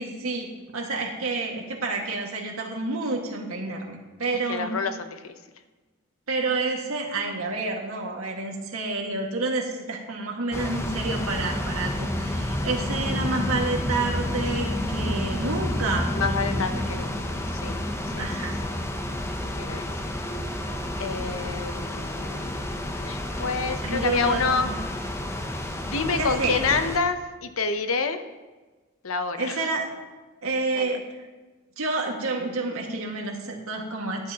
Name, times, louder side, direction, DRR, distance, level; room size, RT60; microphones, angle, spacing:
voice 1, 0.0-4.7 6.3-16.1 18.2-18.6 23.8-24.8 26.2-26.6 29.4-29.9 30.4-31.0 31.8-34.3, right 3 dB, 85° right, 0 dB, 1.9 m, -29 dB
voice 2, 4.5-5.3 16.1-17.8 18.2-18.3 19.6-20.2 21.0-22.4 23.0-24.7 25.8-28.2 29.0-29.7 30.7-31.0, left 4 dB, 75° left, 8 dB, 0.8 m, -28 dB
sound 1, 10.5-27.0, left 1 dB, 15° left, 0.7 m, -30 dB
13.0 x 10.5 x 2.9 m, 1.3 s
head